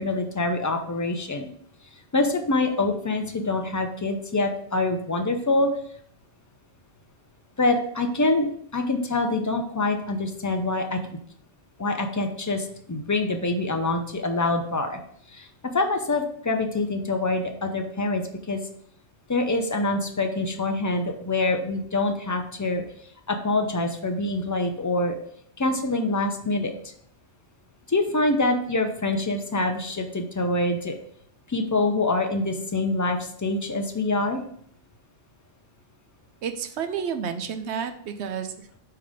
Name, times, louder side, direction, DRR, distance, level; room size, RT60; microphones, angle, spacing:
voice 1, 0.0-1.5 2.1-5.7 7.6-11.0 11.8-15.0 15.3-15.5 15.7-18.6 19.3-22.8 23.3-25.2 25.6-26.7 27.9-31.0 31.5-34.4, left 2 dB, 25° left, 5 dB, 0.4 m, -25 dB
voice 2, 36.4-38.8, right 7 dB, 75° right, 8 dB, 0.9 m, -31 dB
5.6 x 3.5 x 5.0 m, 0.65 s
omnidirectional pair, 1.2 m